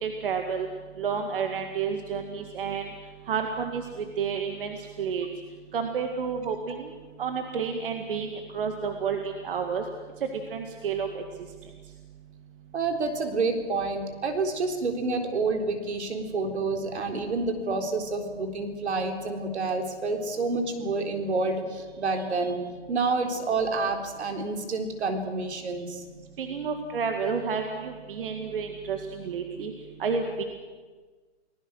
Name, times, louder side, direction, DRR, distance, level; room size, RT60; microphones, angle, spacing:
voice 1, 0.0-0.7 1.0-2.8 3.3-5.3 5.7-6.9 7.2-9.8 10.5-11.2 26.4-29.7 30.0-30.4, right 6 dB, 50° right, 5 dB, 2.1 m, -30 dB
voice 2, 12.7-22.6 22.9-26.0, right 3 dB, 65° right, 5 dB, 3.9 m, -28 dB
29.5 x 19.0 x 6.4 m, 1.4 s
hypercardioid pair, 160°, 36 cm